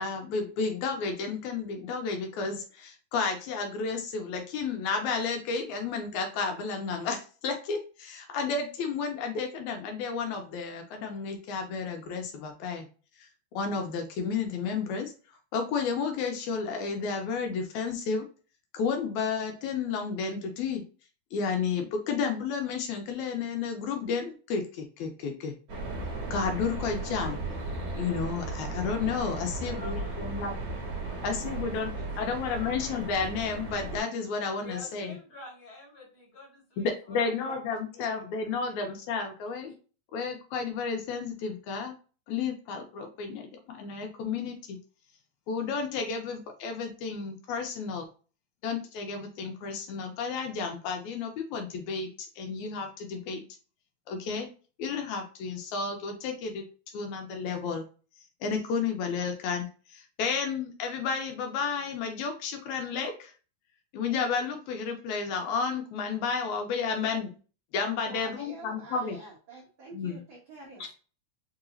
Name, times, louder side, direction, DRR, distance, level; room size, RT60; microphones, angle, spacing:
voice 1, 0.0-12.9 13.2-13.3 13.6-18.3 18.7-20.8 21.3-25.5 26.3-27.4 28.0-30.5 31.2-31.9 32.2-35.1 36.8-39.7 40.1-41.9 42.3-44.8 45.5-48.1 48.6-53.4 54.1-54.5 54.8-57.8 58.4-63.3 63.9-67.4 67.7-69.2 69.9-70.2, left 5 dB, 80° left, 4 dB, 2.0 m, -32 dB
sound 1, 25.7-34.0, right 2 dB, 50° right, 1.9 m, -36 dB
voice 2, 29.6-30.4 31.0-31.2 31.4-31.6 31.9-32.7 34.6-37.5 37.9-38.0, left 2 dB, 45° left, -3 dB, 2.4 m, -47 dB
voice 3, 68.0-70.9, right 2 dB, 80° right, -2 dB, 1.1 m, -47 dB
4.7 x 2.9 x 2.5 m, 0.37 s
omnidirectional pair, 3.5 m